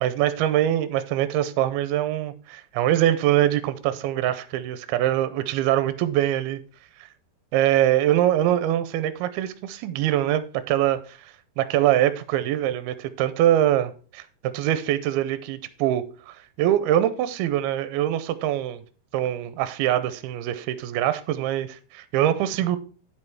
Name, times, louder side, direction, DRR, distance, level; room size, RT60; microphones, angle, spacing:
voice 1, 0.0-6.6 7.0-7.1 7.5-14.3 14.5-18.8 19.1-22.8, right 12 dB, 80° right, 2.4 m, -23 dB
9.8 x 5.5 x 4.6 m
omnidirectional pair, 4.8 m